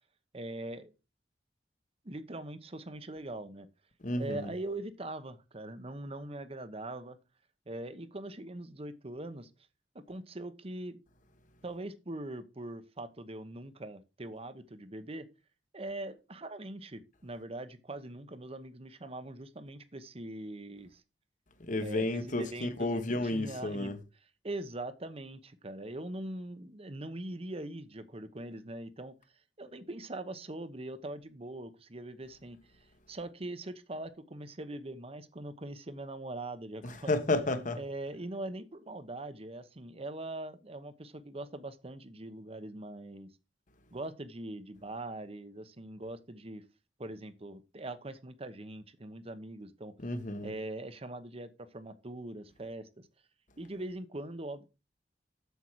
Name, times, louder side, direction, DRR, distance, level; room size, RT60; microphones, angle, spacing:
voice 1, 0.3-0.9 2.0-3.7 4.2-7.2 7.7-9.5 9.9-11.0 11.6-15.3 15.7-21.0 21.8-23.9 24.4-29.1 29.6-37.1 37.8-43.3 43.9-46.6 47.0-49.9 50.4-53.1 53.6-54.6, right 2 dB, 35° right, 1.0 m, -42 dB
voice 2, 4.0-4.5 21.6-23.9 36.8-37.8 50.0-50.5, left 2 dB, 45° left, 1.3 m, -32 dB
8.2 x 7.2 x 4.7 m
head